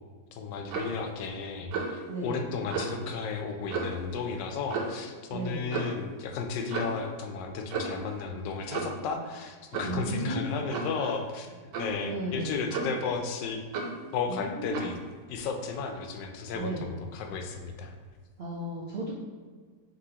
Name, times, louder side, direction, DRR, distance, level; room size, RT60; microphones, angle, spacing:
voice 1, 0.3-13.6 14.1-15.0 15.3-17.9, left 5 dB, 90° left, 5 dB, 1.2 m, -34 dB
Clock, 0.7-1.0 1.7-2.0 2.7-2.9 3.7-4.0 4.7-5.0 5.7-6.0 6.7-7.0 7.7-8.1 8.7-9.0 9.7-10.0 10.7-11.0 11.7-12.0 12.7-13.1 13.7-14.0 14.7-15.0, right 4 dB, 85° right, 1.3 m, -33 dB
voice 2, 2.1-2.4 5.3-5.7 9.8-10.7 10.9-11.1 12.0-12.6 14.3-14.9 16.5-16.8 18.4-19.1, right 1 dB, 65° right, -6 dB, 0.6 m, -34 dB
5.3 x 3.1 x 2.8 m, 1.5 s
omnidirectional pair, 1.9 m